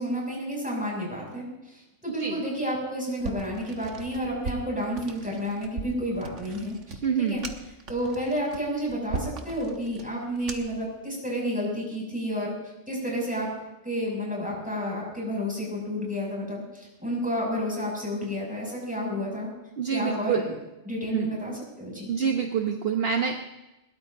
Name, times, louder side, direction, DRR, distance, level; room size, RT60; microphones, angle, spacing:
voice 1, 0.0-1.4 2.0-7.4 7.9-12.5 12.9-13.5 13.8-19.5 19.9-20.5 20.9-22.1, equal, 5° right, -3 dB, 6.8 m, -30 dB
sound 1, 3.2-10.9, right 4 dB, 85° right, 1.6 m, -39 dB
voice 2, 7.0-7.4 19.8-20.5 21.1-21.4 22.1-23.3, right 7 dB, 55° right, 2 dB, 1.3 m, -26 dB
21.5 x 19.0 x 2.7 m, 0.98 s
omnidirectional pair, 1.2 m